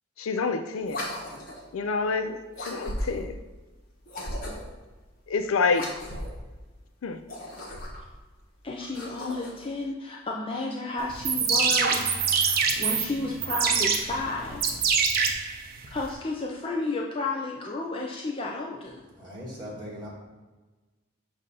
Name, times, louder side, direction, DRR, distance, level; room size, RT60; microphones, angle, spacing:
voice 1, 0.2-1.0 1.7-3.4 5.3-5.9 7.0-7.2, left 4 dB, 85° left, 9 dB, 0.4 m, -27 dB
sound 1, 0.8-1.7 2.5-3.3 4.0-4.8 5.7-6.4 7.2-8.1 8.8-9.7, left 1 dB, 45° left, 1.3 m, -36 dB
voice 2, 8.6-14.8 15.9-19.0, left 3 dB, 25° left, -1 dB, 0.4 m, -32 dB
sound 2, 11.1-16.1, right 5 dB, 45° right, 0.6 m, -25 dB
voice 3, 19.1-20.1, equal, 20° right, -5 dB, 1.6 m, -39 dB
7.3 x 2.7 x 5.4 m, 1.2 s
head